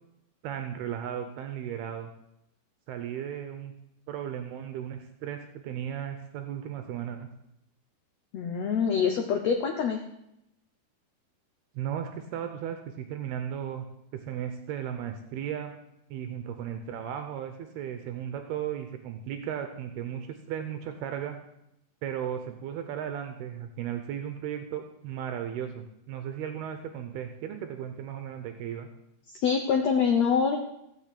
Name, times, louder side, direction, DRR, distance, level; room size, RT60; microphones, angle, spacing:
voice 1, 0.4-2.1 2.9-3.7 4.1-7.3 11.7-13.9 14.3-15.7 16.1-21.4 22.0-28.9, right 9 dB, 80° right, 7 dB, 2.8 m, -35 dB
voice 2, 8.3-10.0 29.3-30.6, left 6 dB, 85° left, 4 dB, 1.5 m, -25 dB
16.0 x 6.7 x 8.3 m, 0.83 s
omnidirectional pair, 4.6 m